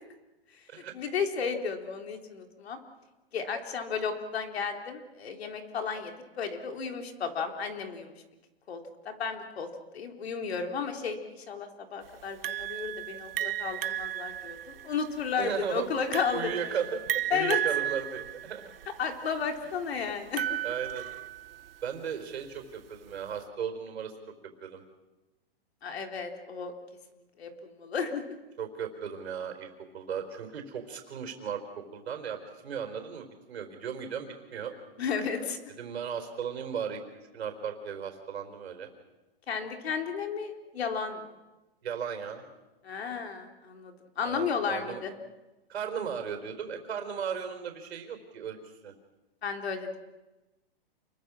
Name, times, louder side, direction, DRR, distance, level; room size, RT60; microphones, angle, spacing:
voice 1, 0.5-2.8 3.3-8.1 8.7-8.8 9.0-9.7 9.9-16.8 17.3-17.6 19.0-20.6 25.8-26.7 27.4-28.3 35.0-35.6 39.5-41.3 42.8-45.1 49.4-50.0, left 6 dB, 75° left, 4 dB, 3.9 m, -33 dB
sound 1, 12.4-21.7, right 12 dB, 65° right, 1.1 m, -34 dB
voice 2, 15.4-15.9 16.3-17.0 17.3-18.7 20.6-21.0 21.8-24.1 24.6-24.8 28.6-31.6 31.9-34.7 35.8-37.0 37.3-38.9 41.8-42.4 44.2-45.0 45.7-48.6 48.8-48.9, right 7 dB, 85° right, 6 dB, 4.4 m, -36 dB
29.0 x 22.0 x 6.3 m, 1.1 s
hypercardioid pair, 155°, 31 cm